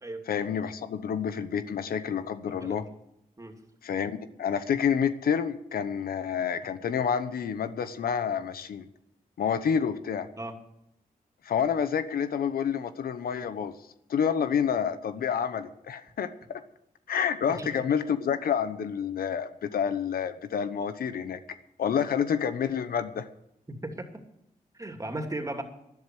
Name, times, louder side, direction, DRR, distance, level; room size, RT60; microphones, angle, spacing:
voice 1, 0.3-2.9 3.8-8.8 9.4-10.3 11.4-13.7 14.1-16.6 17.1-21.4 21.8-23.3, left 7 dB, 85° left, 11 dB, 1.0 m, -28 dB
voice 2, 2.5-2.9 3.4-3.5 10.4-10.6 17.5-17.7 23.7-24.1 24.7-25.6, right 1 dB, 20° right, 4 dB, 2.8 m, -36 dB
12.0 x 11.0 x 8.0 m, 0.80 s
cardioid pair, 65°, 15 cm